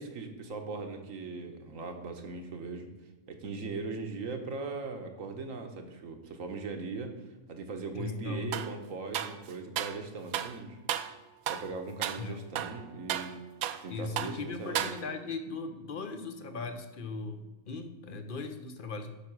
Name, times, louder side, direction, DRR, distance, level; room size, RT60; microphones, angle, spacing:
voice 1, 0.0-2.9 3.3-7.2 7.5-10.8 11.5-13.4 13.8-14.9, right 4 dB, 70° right, 5 dB, 1.5 m, -39 dB
voice 2, 7.9-8.6 12.2-12.4 13.9-19.1, left 4 dB, 45° left, 9 dB, 0.8 m, -38 dB
sound 1, 8.5-8.7 9.1-10.0 10.3-10.6 10.9-11.2 11.5-11.7 12.0-12.2 12.5-13.9 14.2-14.4 14.7-15.3, right 11 dB, 85° right, 1.0 m, -34 dB
8.7 x 6.0 x 6.0 m, 1.2 s
omnidirectional pair, 1.5 m